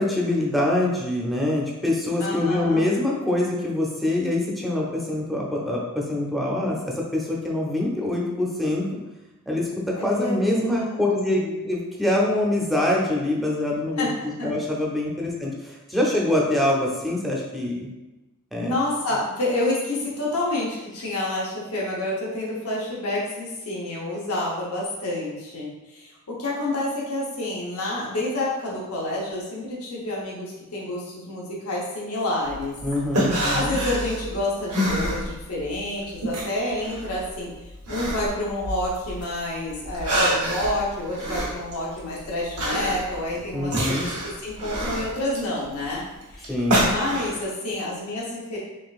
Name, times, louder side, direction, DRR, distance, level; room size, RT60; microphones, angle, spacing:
voice 1, 0.0-9.0 9.5-9.7 10.0-17.9 18.5-18.7 32.8-33.8 43.5-44.1 46.5-46.8, left 1 dB, ahead, -3 dB, 0.6 m, -24 dB
voice 2, 2.2-2.9 10.0-11.0 11.3-11.6 14.0-14.1 14.4-14.5 18.6-32.8 33.5-37.5 37.9-46.5 46.8-48.6, left 1 dB, 80° left, -5 dB, 0.9 m, -29 dB
sound 1, 32.4-35.7 36.0-39.3 39.7-47.4, right 1 dB, 90° right, 1.1 m, -27 dB
3.7 x 3.3 x 2.4 m, 1.1 s
head